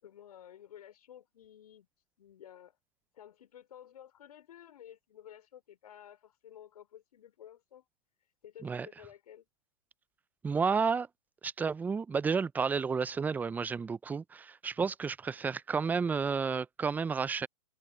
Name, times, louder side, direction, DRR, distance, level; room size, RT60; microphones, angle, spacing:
voice 1, 0.0-1.9 2.2-2.8 3.1-7.9 8.4-9.5, left 10 dB, 65° left, 5.5 m, -53 dB
voice 2, 10.4-11.1 11.4-17.5, right 5 dB, 10° right, 0.5 m, -31 dB
hypercardioid pair, 120°, 21 cm